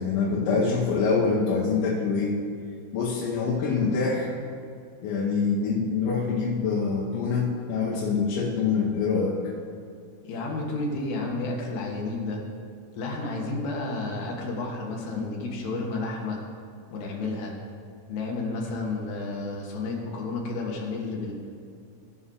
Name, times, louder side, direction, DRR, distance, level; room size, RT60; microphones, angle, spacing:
voice 1, 0.0-2.4 2.9-4.3 5.0-9.4, left 4 dB, 85° left, -4 dB, 3.6 m, -25 dB
voice 2, 10.2-12.4 12.9-16.4 16.9-17.5 18.1-21.3, left 3 dB, 70° left, -1 dB, 3.2 m, -31 dB
18.0 x 6.3 x 3.8 m, 2.3 s
omnidirectional pair, 5.2 m